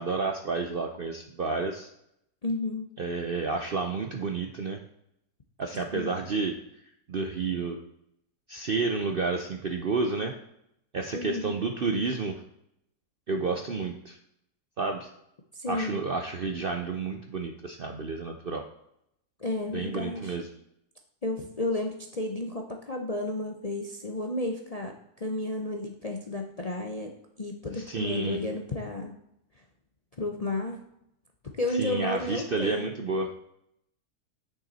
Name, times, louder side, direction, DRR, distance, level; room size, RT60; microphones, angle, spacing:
voice 1, 0.0-1.9 3.0-4.8 5.6-6.6 7.1-7.8 8.5-10.3 10.9-12.4 13.3-14.2 14.8-15.1 15.7-18.6 19.7-20.5 27.8-28.4 31.8-33.3, right 4 dB, 50° right, 4 dB, 0.6 m, -30 dB
voice 2, 2.4-2.9 5.9-6.2 11.1-11.6 15.5-16.0 19.4-20.4 21.2-27.1 27.4-29.2 30.2-30.8 31.6-32.9, left 2 dB, 35° left, 3 dB, 0.6 m, -32 dB
9.0 x 6.7 x 4.1 m, 0.77 s
omnidirectional pair, 1.8 m